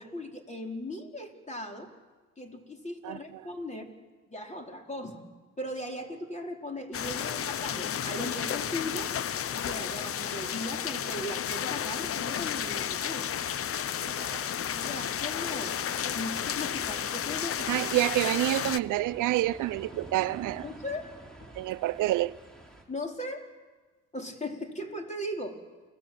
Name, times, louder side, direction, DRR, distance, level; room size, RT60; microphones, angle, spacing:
voice 1, 0.0-1.9 2.4-3.9 4.3-5.2 5.6-9.1 9.5-13.3 14.7-17.8 20.6-21.0 22.9-23.5 24.1-25.6, left 1 dB, 25° left, 2 dB, 4.6 m, -38 dB
sound 1, 6.9-18.8, left 9 dB, 50° left, 0.8 m, -32 dB
voice 2, 14.0-14.5 17.7-20.7 21.6-22.4, right 16 dB, 85° right, 15 dB, 0.7 m, -28 dB
sound 2, 15.2-22.8, right 2 dB, ahead, 5.9 m, -49 dB
29.5 x 19.5 x 8.9 m, 1.4 s
cardioid pair, 90°, 30 cm